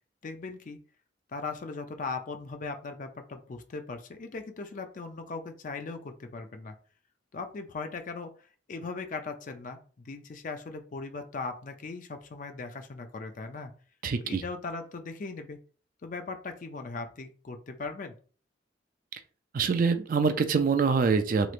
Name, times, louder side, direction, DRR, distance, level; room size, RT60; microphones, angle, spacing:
voice 1, 0.2-0.8 1.3-6.7 7.3-13.7 14.2-15.6 16.0-18.1, left 4 dB, 45° left, 6 dB, 0.4 m, -39 dB
voice 2, 14.0-14.4 19.5-21.5, right 5 dB, 45° right, 9 dB, 0.3 m, -25 dB
3.1 x 3.0 x 2.4 m, 0.40 s
head